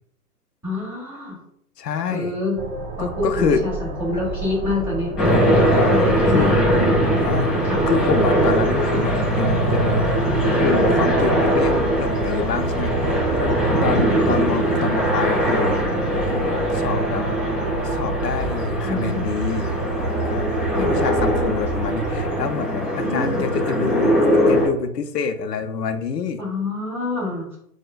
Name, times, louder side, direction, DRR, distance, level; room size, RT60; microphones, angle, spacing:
voice 1, 0.6-1.4 2.1-2.6 3.0-5.1 5.8-6.7 7.6-7.8 14.0-14.2 18.8-19.3 20.2-20.3 20.7-21.0 23.0-23.5 26.4-27.6, left 2 dB, 5° right, -5 dB, 1.4 m, -27 dB
voice 2, 1.8-2.4 3.0-3.6 5.7-5.9 6.3-6.5 7.2-10.1 10.4-15.9 16.3-17.2 17.8-19.7 20.2-20.5 20.7-26.4, left 6 dB, 90° left, 9 dB, 0.5 m, -27 dB
sound 1, 2.6-22.5, right 2 dB, 30° right, 0.6 m, -29 dB
sound 2, 5.2-24.7, equal, 15° left, 0.5 m, -21 dB
4.5 x 2.2 x 2.3 m, 0.71 s
hypercardioid pair, 125°, 47 cm